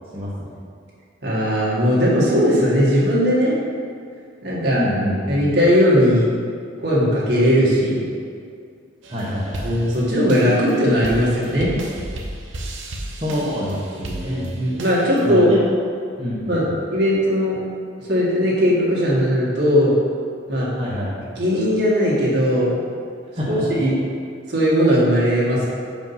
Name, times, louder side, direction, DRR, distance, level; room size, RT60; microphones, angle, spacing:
voice 1, 0.1-0.5 4.7-5.4 9.1-9.7 13.2-14.5 15.2-15.6 16.2-16.6 20.7-21.2 23.3-23.8, equal, 25° right, -9 dB, 1.1 m, -26 dB
voice 2, 1.2-3.6 4.4-4.8 5.3-6.3 6.8-8.0 9.6-11.7 14.2-15.5 16.5-17.6 18.0-19.9 20.5-20.7 21.4-22.8 23.5-24.0 24.5-25.7, equal, 55° right, -6 dB, 1.8 m, -18 dB
sound 1, 9.0-15.3, right 1 dB, 70° right, 0.8 m, -34 dB
5.5 x 5.1 x 5.6 m, 2.3 s
head